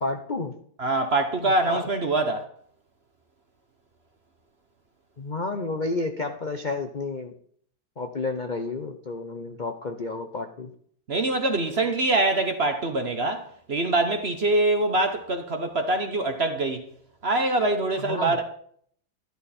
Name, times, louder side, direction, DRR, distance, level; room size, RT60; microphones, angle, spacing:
voice 1, 0.0-0.5 1.4-1.9 5.2-7.3 8.0-10.7 17.9-18.4, left 3 dB, 50° left, 0.5 m, -31 dB
voice 2, 0.8-2.4 11.1-16.9 17.2-18.4, right 2 dB, 45° right, 1.0 m, -24 dB
13.0 x 11.5 x 4.3 m
omnidirectional pair, 2.1 m